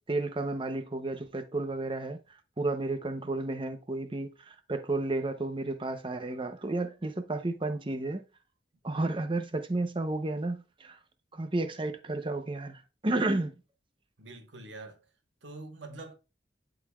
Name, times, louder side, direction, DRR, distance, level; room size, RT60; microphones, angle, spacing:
voice 1, 0.1-2.2 2.6-8.2 8.8-11.0 11.3-13.5, right 2 dB, 30° right, 0.7 m, -32 dB
voice 2, 14.2-15.0 15.4-16.1, right 2 dB, 80° right, 1.3 m, -44 dB
11.5 x 3.9 x 2.4 m
head